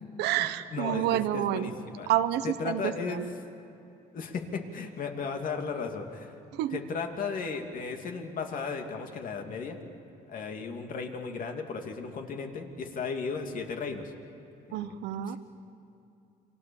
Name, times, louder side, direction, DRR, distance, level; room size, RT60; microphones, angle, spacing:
voice 1, 0.2-1.7 2.1-3.3 6.5-6.8 14.7-15.4, right 12 dB, 85° right, 11 dB, 1.1 m, -29 dB
voice 2, 0.7-2.1 2.4-3.2 4.1-6.3 6.7-9.8 10.3-14.1 14.7-14.9 15.3-15.4, left 5 dB, 55° left, 4 dB, 2.6 m, -35 dB
29.0 x 24.5 x 7.1 m, 2.7 s
cardioid pair, 110°, 17 cm